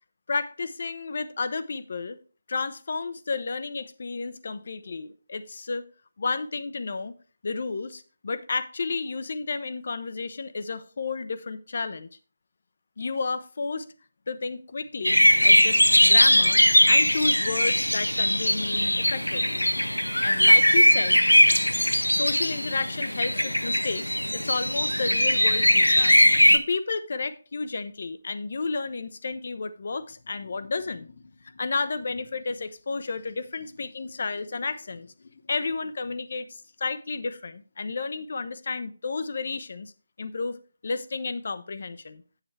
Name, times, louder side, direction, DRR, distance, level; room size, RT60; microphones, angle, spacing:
voice 1, 0.3-2.2 2.5-5.8 6.2-7.1 7.4-12.1 13.0-13.9 14.3-16.6 16.9-19.6 20.2-21.2 22.1-26.1 26.5-39.9 40.2-40.6 40.8-42.2, left 4 dB, 45° left, 13 dB, 0.7 m, -32 dB
sound 1, 15.0-26.6, equal, 85° left, 0.7 m, -20 dB
8.4 x 7.4 x 3.3 m, 0.38 s
figure-of-eight pair, 155°, 0 cm